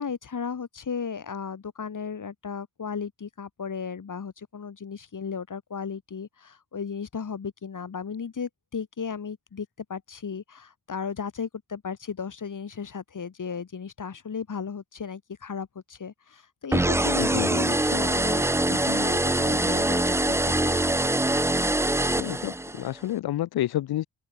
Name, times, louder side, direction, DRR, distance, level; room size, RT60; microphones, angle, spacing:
voice 1, 0.0-20.9, left 6 dB, 55° left, 4.1 m, -35 dB
sound 1, 16.7-22.9, right 1 dB, 5° right, 0.8 m, -24 dB
voice 2, 22.2-24.1, left 13 dB, 85° left, 0.8 m, -29 dB
open air
cardioid pair, 60°, 37 cm